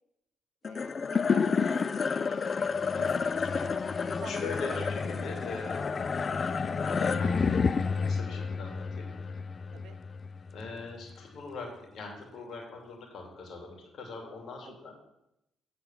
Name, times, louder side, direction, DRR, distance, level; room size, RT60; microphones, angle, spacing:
sound 1, 0.6-11.1, left 5 dB, 40° left, 0.4 m, -30 dB
voice 1, 0.6-1.6 1.9-2.2 2.9-3.8 4.2-4.9 9.7-10.0 14.6-14.9, right 8 dB, 80° right, 12 dB, 0.7 m, -50 dB
voice 2, 4.2-5.8 6.7-7.7 8.0-9.4 10.5-15.0, left 3 dB, 65° left, 0 dB, 2.6 m, -41 dB
9.3 x 4.1 x 7.2 m, 0.87 s
cardioid pair, 90°, 0 cm